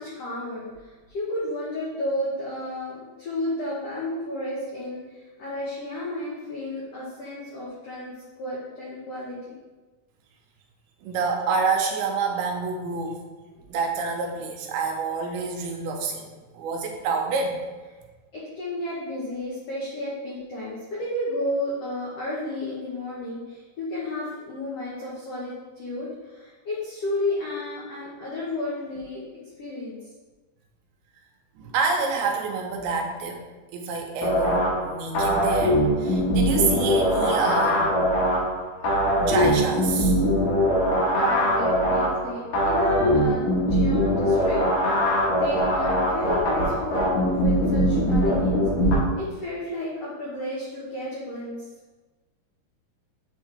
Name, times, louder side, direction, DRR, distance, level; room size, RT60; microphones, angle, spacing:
voice 1, 0.0-8.1 8.4-9.5 13.5-13.6 18.3-29.2 29.6-30.0 41.0-45.1 45.4-48.6 49.2-51.6, left 1 dB, 80° left, -6 dB, 1.4 m, -32 dB
voice 2, 11.0-13.2 13.7-17.6 31.6-33.4 33.7-37.9 39.2-40.1 41.1-41.4, right 4 dB, 85° right, 1 dB, 2.7 m, -27 dB
sound 1, 34.2-49.0, equal, 60° left, 2.2 m, -22 dB
8.6 x 3.7 x 3.3 m, 1.3 s
omnidirectional pair, 4.4 m